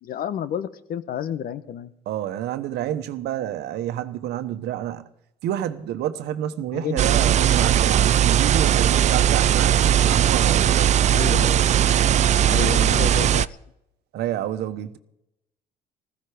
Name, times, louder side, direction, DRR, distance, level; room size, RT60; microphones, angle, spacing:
voice 1, 0.0-1.9 6.7-7.4 11.1-11.7 12.5-13.6, left 9 dB, 60° left, 1.0 m, -31 dB
voice 2, 2.1-5.1 5.4-11.0 14.1-15.0, right 11 dB, 75° right, 1.2 m, -28 dB
sound 1, 7.0-13.5, right 10 dB, 45° right, 0.4 m, -18 dB
15.0 x 14.5 x 5.1 m
cardioid pair, 110°, 17 cm